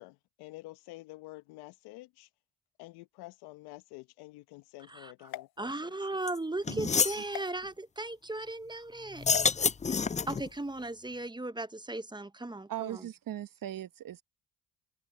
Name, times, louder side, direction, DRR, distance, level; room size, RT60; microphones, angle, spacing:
voice 1, 0.0-2.3 2.8-6.1, left 21 dB, 80° left, 1.5 m, -49 dB
sound 1, 5.3-6.3 7.3-7.5 9.3-9.5, left 14 dB, 65° left, 0.9 m, -44 dB
voice 2, 5.6-9.3 10.3-13.1, right 2 dB, 10° right, 1.1 m, -37 dB
sound 2, 6.3-6.4 6.7-7.2 9.1-10.5, left 5 dB, 20° left, 0.5 m, -28 dB
voice 3, 12.7-14.2, right 12 dB, 55° right, 1.3 m, -39 dB
open air
hypercardioid pair, 50°, 39 cm